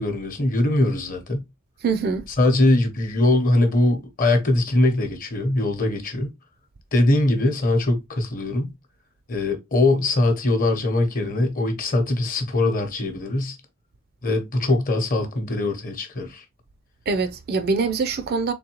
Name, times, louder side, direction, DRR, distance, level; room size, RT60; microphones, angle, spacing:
voice 1, 0.0-1.4 2.4-6.3 6.9-8.7 9.3-13.6 14.2-16.4, left 2 dB, 40° left, 0.9 m, -21 dB
voice 2, 1.8-2.3 17.1-18.5, right 4 dB, 45° right, 0.5 m, -23 dB
3.8 x 3.2 x 2.9 m
head